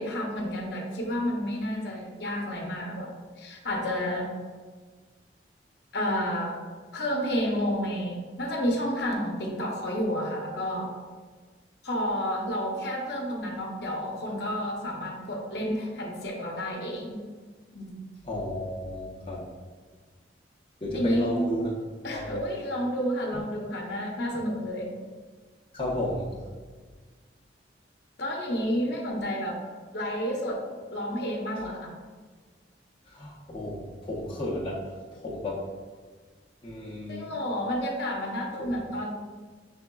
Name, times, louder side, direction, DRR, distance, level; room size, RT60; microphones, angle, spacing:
voice 1, 0.0-3.1 3.4-4.3 5.9-6.6 6.9-10.9 11.8-17.2 17.7-17.9 20.9-21.5 22.0-24.9 28.2-29.6 29.9-30.6 30.9-31.9 37.1-39.1, equal, 60° left, 0 dB, 0.7 m, -30 dB
voice 2, 18.2-19.5 20.8-21.7 22.1-22.4 25.7-26.4 33.1-35.7 36.6-37.3 38.6-38.7, left 1 dB, 30° left, -5 dB, 0.6 m, -33 dB
6.2 x 3.4 x 2.2 m, 1.5 s
head